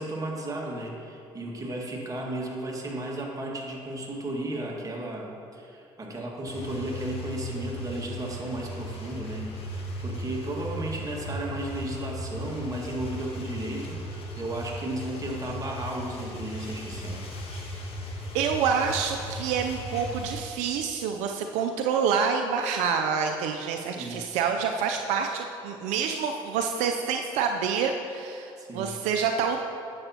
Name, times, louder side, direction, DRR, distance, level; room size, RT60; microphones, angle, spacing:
voice 1, 0.0-17.2 24.0-24.2 28.6-28.9, right 1 dB, 30° right, -1 dB, 1.7 m, -34 dB
sound 1, 6.5-20.4, equal, 55° left, 1.4 m, -37 dB
voice 2, 18.3-29.6, right 6 dB, 80° right, 4 dB, 0.4 m, -27 dB
10.5 x 7.0 x 2.8 m, 2.6 s
hypercardioid pair, 60°, 12 cm